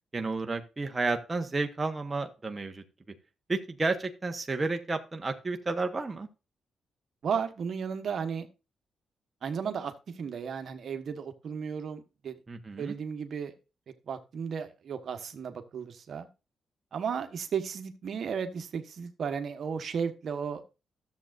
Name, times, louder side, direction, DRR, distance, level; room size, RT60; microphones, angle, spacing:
voice 1, 0.1-2.8 3.5-6.3 12.5-12.9, right 3 dB, 25° right, 1.1 m, -31 dB
voice 2, 7.2-8.5 9.4-12.4 12.8-13.5 14.1-16.3 16.9-20.6, right 6 dB, 60° right, 1.2 m, -34 dB
13.0 x 7.5 x 2.5 m
cardioid pair, 95°, 0 cm